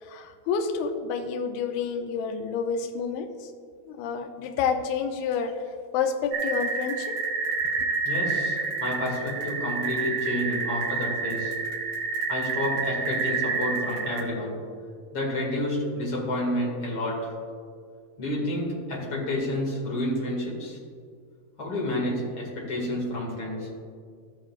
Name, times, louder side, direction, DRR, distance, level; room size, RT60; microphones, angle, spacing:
voice 1, 0.0-3.5 3.9-5.6 5.9-7.1, left 6 dB, 85° left, 5 dB, 2.6 m, -29 dB
sound 1, 6.3-14.2, right 5 dB, 75° right, 2.4 m, -29 dB
voice 2, 8.0-11.5 12.3-14.6 15.1-17.4 18.2-20.8 21.6-23.7, left 1 dB, 40° left, -4 dB, 2.3 m, -30 dB
13.5 x 7.4 x 2.4 m, 2.1 s
omnidirectional pair, 4.4 m